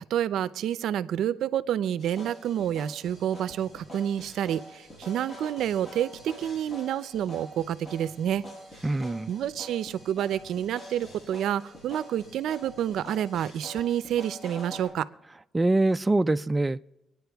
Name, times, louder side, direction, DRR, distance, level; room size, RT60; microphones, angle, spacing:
voice 1, 0.0-8.4 9.3-15.1, right 10 dB, 80° right, 0.5 m, -29 dB
sound 1, 2.0-14.9, equal, 45° left, 6.2 m, -45 dB
voice 2, 8.8-9.3 15.5-16.8, right 2 dB, 20° right, 0.4 m, -24 dB
25.0 x 9.8 x 3.5 m
cardioid pair, 80°, 0 cm